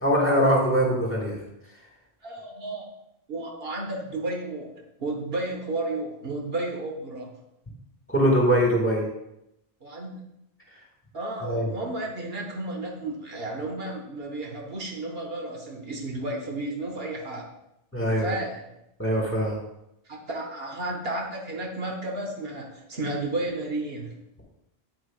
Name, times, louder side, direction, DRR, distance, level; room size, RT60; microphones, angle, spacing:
voice 1, 0.0-1.4 8.1-9.1 11.4-11.7 17.9-18.3 19.0-19.6, equal, 10° left, -2 dB, 1.8 m, -22 dB
voice 2, 2.2-2.9 3.3-4.7 5.0-7.3 9.8-10.1 11.1-17.5 18.1-18.7 20.1-24.1, right 2 dB, 65° right, 0 dB, 1.3 m, -32 dB
8.6 x 8.0 x 2.4 m, 0.84 s
omnidirectional pair, 1.1 m